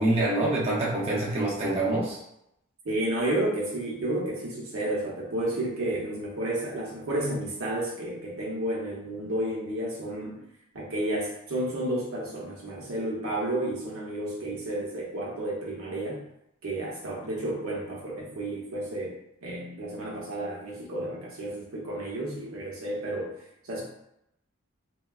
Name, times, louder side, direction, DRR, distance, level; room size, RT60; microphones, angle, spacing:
voice 1, 0.0-2.2, right 1 dB, 30° right, -5 dB, 0.5 m, -25 dB
voice 2, 2.8-10.4 10.7-16.2 16.6-23.4 23.6-23.8, right 1 dB, 85° right, -3 dB, 0.8 m, -31 dB
3.4 x 2.2 x 2.2 m, 0.80 s
head